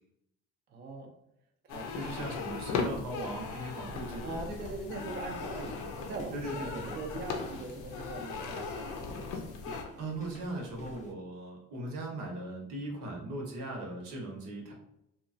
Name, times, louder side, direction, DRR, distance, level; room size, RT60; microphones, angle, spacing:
voice 1, 0.7-1.1 1.6-2.3 4.2-9.6, right 3 dB, 35° right, 2 dB, 0.4 m, -42 dB
sound 1, 1.7-9.8, left 4 dB, 90° left, 0.5 m, -38 dB
voice 2, 1.9-4.4 6.3-7.0 9.6-14.7, right 1 dB, 85° right, 0 dB, 1.0 m, -39 dB
sound 2, 4.2-11.1, left 2 dB, 25° left, 0.5 m, -50 dB
2.9 x 2.3 x 2.5 m, 0.81 s
cardioid pair, 125°, 30 cm